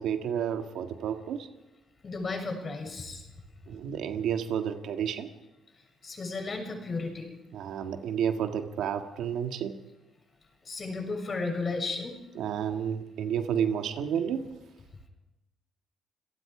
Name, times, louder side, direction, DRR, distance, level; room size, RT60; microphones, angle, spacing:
voice 1, 0.0-1.5 3.7-5.3 7.5-9.8 12.4-14.4, right 8 dB, 80° right, 6 dB, 1.8 m, -31 dB
voice 2, 2.0-3.2 6.0-7.3 10.7-12.2, left 3 dB, 35° left, 3 dB, 7.0 m, -34 dB
29.5 x 18.0 x 5.0 m, 1.0 s
cardioid pair, 90°, 0 cm